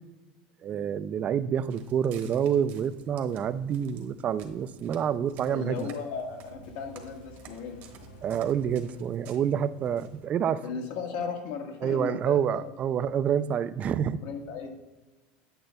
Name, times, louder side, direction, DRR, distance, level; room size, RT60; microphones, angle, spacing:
voice 1, 0.6-5.9 8.2-10.6 11.8-14.2, right 8 dB, 35° right, 14 dB, 0.3 m, -28 dB
Walk footsteps, 1.6-10.3, right 8 dB, 50° right, 1.1 m, -52 dB
voice 2, 5.5-7.8 10.6-12.7 14.2-14.7, left 5 dB, 65° left, 2 dB, 1.5 m, -36 dB
sound 1, 6.6-9.6, left 4 dB, 85° left, 0.7 m, -54 dB
8.8 x 7.7 x 2.3 m, 1.2 s
supercardioid pair, 125°, 4 cm